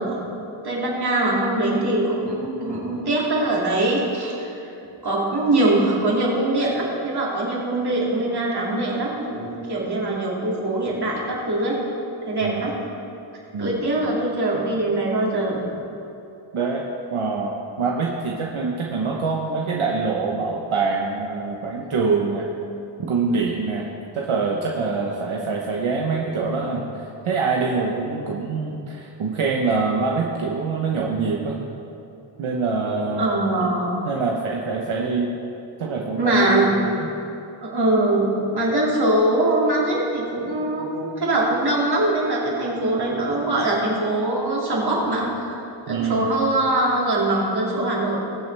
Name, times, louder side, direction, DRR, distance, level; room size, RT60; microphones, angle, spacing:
voice 1, 0.0-4.7 5.0-11.8 12.3-12.8 13.3-15.7 33.2-34.0 36.2-36.7 37.6-45.6 45.9-48.2, right 2 dB, 50° right, -4 dB, 2.6 m, -22 dB
voice 2, 16.5-16.8 17.1-17.5 17.8-22.5 23.1-23.9 24.1-31.6 32.4-33.3 33.6-33.7 34.0-35.3 35.8-37.1 45.9-46.3, right 4 dB, 80° right, -1 dB, 1.0 m, -24 dB
21.0 x 7.2 x 3.4 m, 2.8 s
wide cardioid pair, 140°, 48 cm